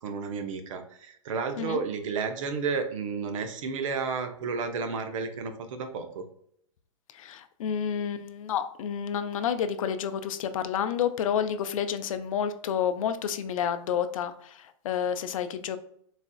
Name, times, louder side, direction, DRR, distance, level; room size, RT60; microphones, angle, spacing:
voice 1, 0.0-6.2, right 5 dB, 70° right, 7 dB, 0.7 m, -32 dB
voice 2, 7.1-15.8, left 8 dB, 75° left, 10 dB, 0.4 m, -30 dB
4.1 x 2.4 x 2.3 m, 0.68 s
hypercardioid pair, 130°, 17 cm